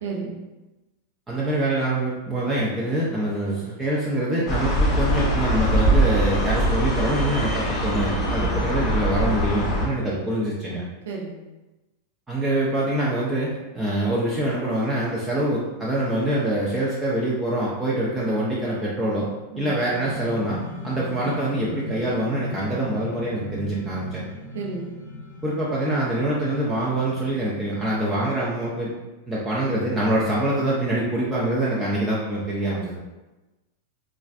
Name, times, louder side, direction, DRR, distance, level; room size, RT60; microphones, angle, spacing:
voice 1, 0.0-0.4 8.3-8.5 11.1-11.3 19.5-19.7 24.5-24.9 32.6-33.0, right 4 dB, 60° right, -2 dB, 0.6 m, -33 dB
voice 2, 1.3-10.8 12.3-19.3 19.6-20.6 20.8-24.3 25.4-28.9 29.3-33.0, right 1 dB, 10° right, -6 dB, 0.6 m, -25 dB
sound 1, 4.5-9.9, right 1 dB, 20° left, 0.8 m, -22 dB
sound 2, 19.9-28.5, left 2 dB, 65° left, 0.7 m, -38 dB
4.0 x 2.4 x 2.3 m, 1.1 s
figure-of-eight pair, 90°, 0 cm